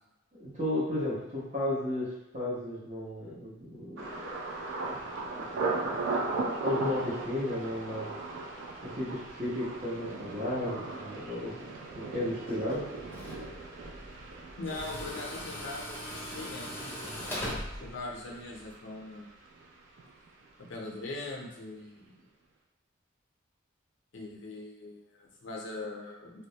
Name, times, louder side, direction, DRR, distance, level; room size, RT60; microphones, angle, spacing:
voice 1, 0.4-4.3 5.3-5.5 5.8-6.1 6.6-8.2 8.8-11.7 12.0-12.9, left 1 dB, 35° right, -7 dB, 0.8 m, -34 dB
Thunder, 4.0-19.7 20.0-20.6 21.0-21.3, right 3 dB, 70° right, 0.4 m, -38 dB
Tools, 12.5-18.7, equal, 10° left, 0.3 m, -41 dB
voice 2, 14.6-17.2 17.8-19.3 20.7-22.2 24.1-26.5, left 2 dB, 70° left, -1 dB, 0.5 m, -41 dB
2.2 x 2.0 x 2.7 m, 0.94 s
head